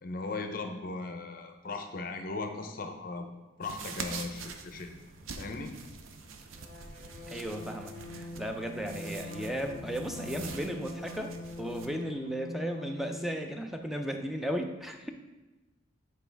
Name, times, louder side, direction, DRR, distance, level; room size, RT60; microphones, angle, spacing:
voice 1, 0.0-3.3 3.6-4.9 5.4-5.7, left 3 dB, 45° left, 5 dB, 0.6 m, -37 dB
sound 1, 3.6-11.9, right 4 dB, 90° right, 0.6 m, -45 dB
sound 2, 6.5-13.4, equal, 45° right, 1.8 m, -43 dB
voice 2, 7.3-15.1, equal, ahead, 4 dB, 0.4 m, -35 dB
8.4 x 4.5 x 3.4 m, 1.2 s
head